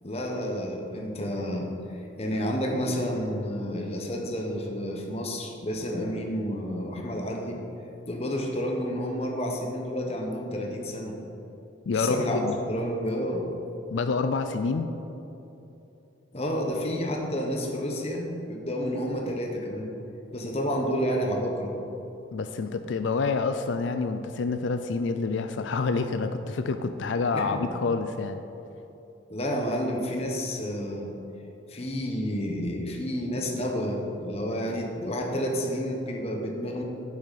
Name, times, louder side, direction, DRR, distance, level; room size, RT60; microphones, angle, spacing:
voice 1, 0.0-1.7 2.2-7.7 8.1-11.2 11.9-13.5 16.3-19.9 20.3-21.7 27.3-27.6 29.3-31.1 31.7-36.8, equal, 30° left, 2 dB, 1.0 m, -30 dB
voice 2, 11.9-12.6 13.9-14.9 22.3-28.4, left 4 dB, 75° left, 8 dB, 0.4 m, -27 dB
8.7 x 8.2 x 4.1 m, 3.0 s
head